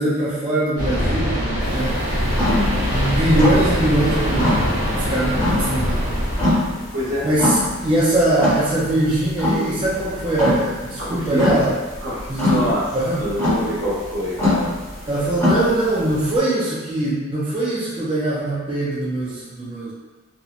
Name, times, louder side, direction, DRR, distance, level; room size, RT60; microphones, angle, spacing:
voice 1, 0.0-1.4 1.7-2.0 2.9-4.7 5.1-6.2 7.2-11.7 12.3-13.2 15.1-19.9, right 1 dB, 25° right, -8 dB, 0.4 m, -21 dB
sound 1, 0.8-6.5, equal, 50° right, 1.0 m, -22 dB
sound 2, 1.6-16.4, left 1 dB, 10° left, 0.7 m, -25 dB
voice 2, 2.4-2.7 6.7-7.5 11.0-11.5 12.0-12.8 13.2-14.7, equal, 85° right, -10 dB, 1.2 m, -25 dB
2.9 x 2.0 x 2.4 m, 1.3 s
head